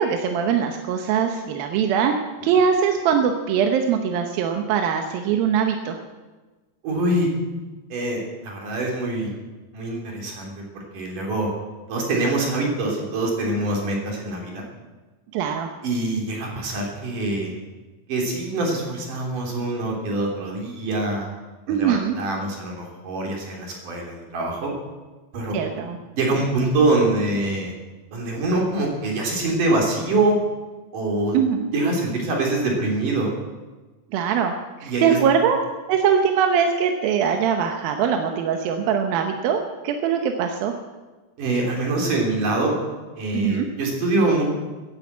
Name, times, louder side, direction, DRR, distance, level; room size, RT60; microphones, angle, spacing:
voice 1, 0.0-6.0 15.3-15.7 21.7-22.2 25.5-26.0 31.3-31.7 34.1-35.6 35.9-40.7 43.3-43.7, right 7 dB, 85° right, 4 dB, 2.8 m, -22 dB
voice 2, 6.8-7.3 7.9-9.3 9.7-11.5 11.9-14.6 15.8-17.5 18.1-21.3 21.7-24.7 25.3-25.6 26.1-27.7 28.1-30.4 30.9-31.4 31.7-33.3 34.8-35.2 41.4-42.7 43.1-44.4, right 2 dB, 65° right, 0 dB, 4.6 m, -24 dB
15.0 x 10.5 x 8.6 m, 1.2 s
omnidirectional pair, 4.1 m